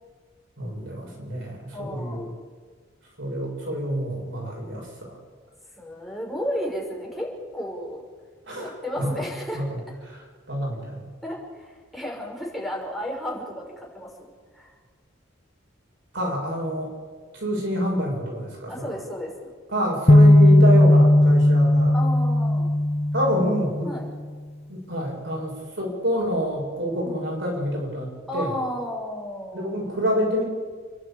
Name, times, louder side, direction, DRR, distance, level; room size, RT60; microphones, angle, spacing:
voice 1, 0.6-2.3 3.2-5.1 8.5-9.2 9.5-9.7 10.0-11.1 16.1-16.9 17.3-18.9 19.7-22.0 23.1-23.9 24.7-28.5 29.5-30.4, equal, 70° right, -1 dB, 6.5 m, -27 dB
voice 2, 1.7-2.2 5.8-8.0 8.6-9.6 11.2-14.1 14.5-14.7 18.7-19.5 21.9-22.7 23.8-24.1 27.0-27.2 28.3-29.8, equal, ahead, -3 dB, 5.5 m, -33 dB
sound 1, 20.1-24.1, left 1 dB, 30° left, 0.8 m, -16 dB
28.5 x 11.5 x 8.9 m, 1.5 s
head